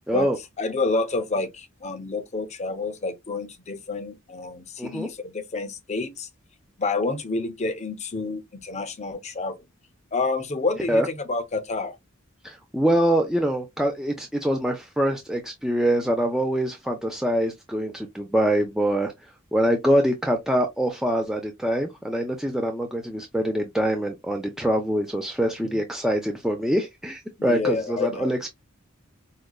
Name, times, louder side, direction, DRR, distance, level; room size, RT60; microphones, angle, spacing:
voice 1, 0.6-6.3 6.8-9.6 10.1-12.0 25.6-25.8 27.4-28.4, left 3 dB, 35° left, 0.7 m, -29 dB
voice 2, 4.8-5.1 10.9-11.1 12.4-19.1 19.5-28.5, equal, ahead, 0.5 m, -24 dB
4.9 x 2.2 x 2.3 m
head